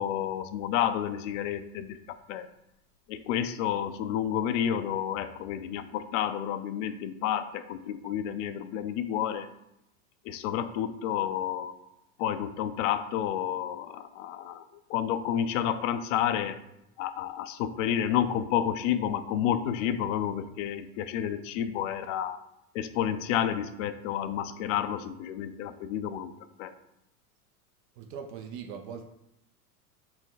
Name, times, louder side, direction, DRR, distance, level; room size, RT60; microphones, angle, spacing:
voice 1, 0.0-2.5 3.1-9.5 10.2-11.7 12.2-16.6 17.0-22.4 22.7-26.3 26.6-26.7, left 10 dB, 55° left, 11 dB, 0.5 m, -30 dB
voice 2, 28.0-29.0, right 7 dB, 50° right, 4 dB, 0.5 m, -40 dB
4.2 x 2.1 x 3.9 m, 0.86 s
hypercardioid pair, 100°, 46 cm